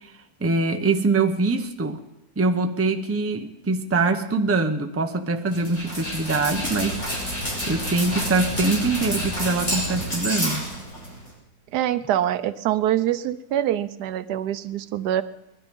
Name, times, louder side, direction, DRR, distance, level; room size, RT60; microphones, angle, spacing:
voice 1, 0.4-2.0 2.4-7.0 7.7-10.6, right 3 dB, 15° right, 6 dB, 0.6 m, -23 dB
Dog, 5.5-11.3, equal, 45° left, 6.4 m, -29 dB
voice 2, 11.7-15.2, right 11 dB, 90° right, 13 dB, 1.3 m, -24 dB
21.0 x 12.5 x 5.4 m, 0.92 s
omnidirectional pair, 1.7 m